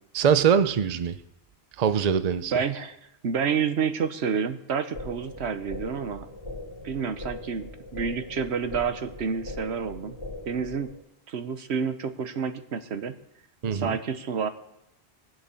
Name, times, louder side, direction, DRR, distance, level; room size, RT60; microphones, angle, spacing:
voice 1, 0.1-1.1 1.8-2.5 13.6-14.0, right 7 dB, 45° right, 12 dB, 0.7 m, -22 dB
voice 2, 2.5-3.0 3.2-6.3 6.8-10.2 10.5-10.9 11.3-13.2 13.7-14.5, right 6 dB, 85° right, 10 dB, 1.2 m, -29 dB
sound 1, 4.9-10.9, left 2 dB, 25° left, 2.5 m, -40 dB
18.5 x 7.6 x 7.0 m, 0.84 s
omnidirectional pair, 1.1 m